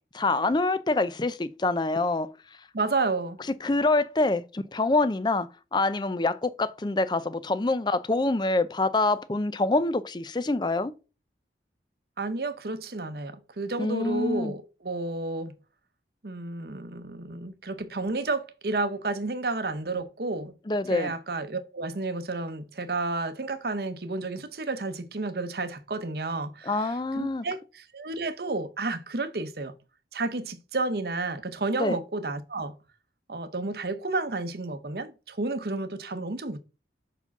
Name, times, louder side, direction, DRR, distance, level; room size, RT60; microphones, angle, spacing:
voice 1, 0.2-2.3 3.6-10.9 13.8-14.5 20.7-21.1 26.7-27.4 31.8-32.0, left 2 dB, 25° left, 0.5 m, -26 dB
voice 2, 2.7-3.4 12.2-15.5 16.2-20.5 20.9-29.8 30.1-32.8 33.3-36.6, right 3 dB, 55° right, 0.8 m, -31 dB
5.4 x 4.8 x 5.8 m
head